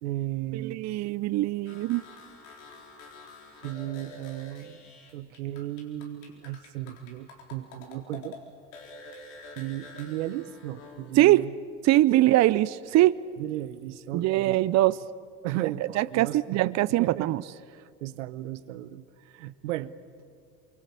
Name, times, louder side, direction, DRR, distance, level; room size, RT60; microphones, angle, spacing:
voice 1, 0.0-0.8 3.6-4.8 5.1-8.4 9.6-11.6 12.1-12.3 13.4-14.6 15.4-17.3 17.6-19.9, right 14 dB, 90° right, 14 dB, 0.9 m, -35 dB
voice 2, 0.5-2.0 11.2-11.5 11.8-13.2 14.1-15.0 16.0-17.4, right 16 dB, 50° right, 17 dB, 0.6 m, -22 dB
sound 1, 1.7-8.4 8.7-11.2, left 3 dB, 85° left, 4.1 m, -47 dB
24.5 x 23.5 x 8.4 m, 2.2 s
supercardioid pair, 80°, 36 cm